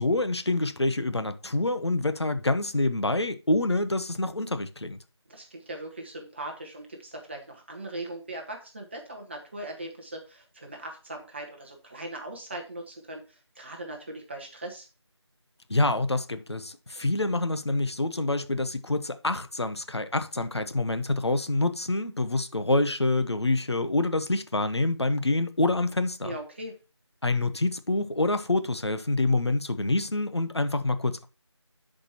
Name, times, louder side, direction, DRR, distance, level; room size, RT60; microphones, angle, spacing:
voice 1, 0.0-5.0 15.7-26.3 27.2-31.3, left 2 dB, 65° left, 1.0 m, -26 dB
voice 2, 5.3-14.9 26.2-26.7, right 1 dB, 25° right, 1.5 m, -39 dB
10.5 x 5.2 x 2.9 m
figure-of-eight pair, 170°, 15 cm